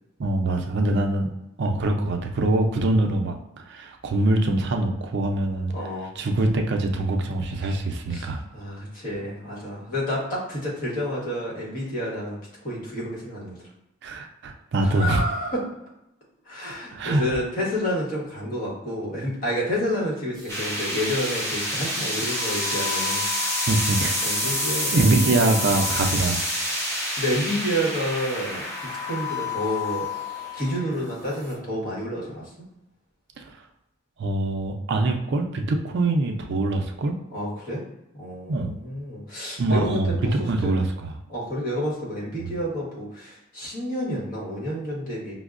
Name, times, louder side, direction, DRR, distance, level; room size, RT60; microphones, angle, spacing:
voice 1, 0.2-1.3 1.6-3.3 3.7-5.7 6.2-8.4 14.0-15.3 16.9-17.2 23.7-24.6 24.9-26.4 34.2-37.1 38.5-38.7 39.6-41.1 42.4-42.5, right 2 dB, 55° right, 3 dB, 0.4 m, -24 dB
voice 2, 5.7-6.1 7.6-7.8 8.1-12.4 12.6-13.6 14.8-15.6 16.5-23.2 23.5-23.9 24.2-25.1 25.4-25.5 27.2-30.1 30.5-32.4 37.3-37.8 38.1-40.3 40.6-40.7 41.3-45.4, equal, 45° left, -4 dB, 1.2 m, -29 dB
sound 1, 20.4-21.5 22.2-26.4 27.6-30.8 31.3-31.5, left 12 dB, 20° right, 0.8 m, -36 dB
sound 2, 20.5-31.6, equal, 15° left, 0.7 m, -28 dB
5.1 x 2.0 x 2.4 m, 0.89 s
head